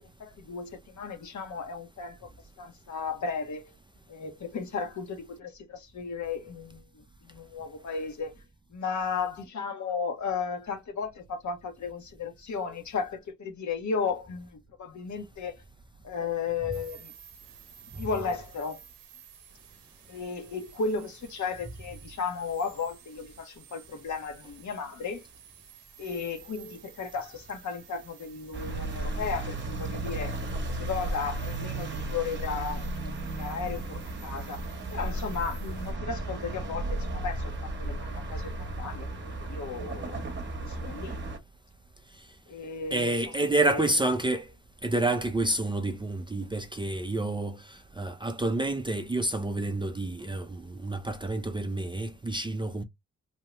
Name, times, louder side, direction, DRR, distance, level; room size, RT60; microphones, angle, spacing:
voice 1, 0.0-2.3 2.6-3.7 4.1-8.3 8.7-15.6 16.0-17.1 18.0-18.8 20.1-25.2 26.0-34.6 34.9-41.2 42.5-43.1 43.6-43.9, left 5 dB, 60° left, 1.0 m, -35 dB
sound 1, 16.7-35.9, right 9 dB, 90° right, 0.7 m, -54 dB
sound 2, 28.5-41.4, right 2 dB, 35° right, 0.9 m, -34 dB
voice 2, 42.9-44.5 44.8-52.8, right 2 dB, 15° right, 0.4 m, -29 dB
2.8 x 2.2 x 2.9 m
cardioid pair, 60°, 32 cm